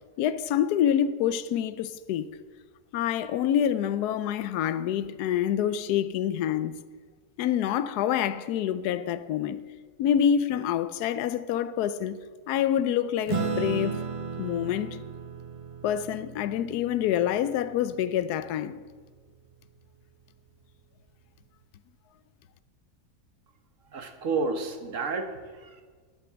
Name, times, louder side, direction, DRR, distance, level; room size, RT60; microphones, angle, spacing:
voice 1, 0.2-2.3 2.9-6.8 7.4-9.6 10.0-12.2 12.5-14.0 14.4-15.0 15.8-18.8, left 10 dB, 85° left, 1.1 m, -27 dB
Acoustic guitar / Strum, 13.3-18.1, right 5 dB, 30° right, 0.7 m, -35 dB
voice 2, 23.8-25.8, right 4 dB, 55° right, 1.4 m, -31 dB
9.9 x 8.5 x 7.3 m
omnidirectional pair, 1.6 m